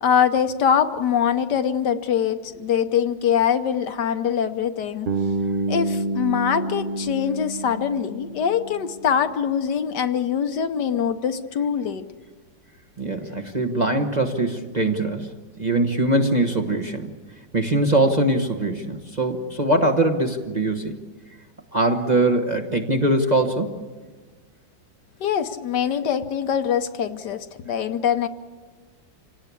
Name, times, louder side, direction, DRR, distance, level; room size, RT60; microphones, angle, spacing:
voice 1, 0.0-5.1 5.7-12.0 25.2-28.3, left 8 dB, 65° left, 9 dB, 1.4 m, -23 dB
Bass guitar, 5.1-9.0, right 2 dB, 80° right, 0.4 m, -28 dB
voice 2, 13.0-17.1 17.5-20.9 21.7-23.7, right 2 dB, 25° right, 2 dB, 1.0 m, -22 dB
26.5 x 18.0 x 8.4 m, 1.4 s
omnidirectional pair, 2.1 m